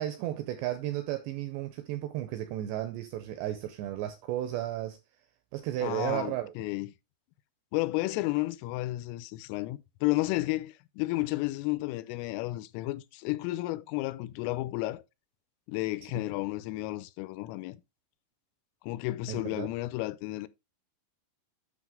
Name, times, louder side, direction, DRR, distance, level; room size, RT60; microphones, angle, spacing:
voice 1, 0.0-5.0 5.5-6.5 16.1-16.3 19.3-19.7, right 13 dB, 85° right, 2.5 m, -34 dB
voice 2, 5.8-6.9 7.7-15.0 15.7-17.8 18.8-20.5, left 19 dB, 85° left, 3.2 m, -32 dB
9.2 x 6.0 x 3.6 m
omnidirectional pair, 5.7 m